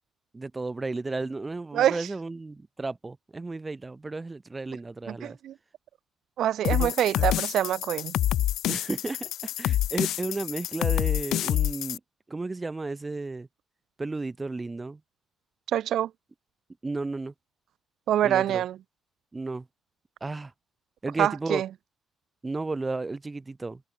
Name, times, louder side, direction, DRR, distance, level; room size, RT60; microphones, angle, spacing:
voice 1, 0.3-5.4 6.7-7.3 8.7-12.0 12.3-13.5 14.0-15.0 16.8-17.3 18.2-18.6 19.3-19.7 20.2-20.5 21.0-21.6 22.4-23.8, right 3 dB, 15° right, 6.4 m, -33 dB
voice 2, 1.7-2.1 5.1-5.5 6.4-8.2 15.7-16.1 18.1-18.8 21.2-21.7, right 11 dB, 65° right, 6.4 m, -25 dB
sound 1, 6.6-12.0, left 13 dB, 80° left, 1.2 m, -27 dB
cardioid pair, 155°, 0 cm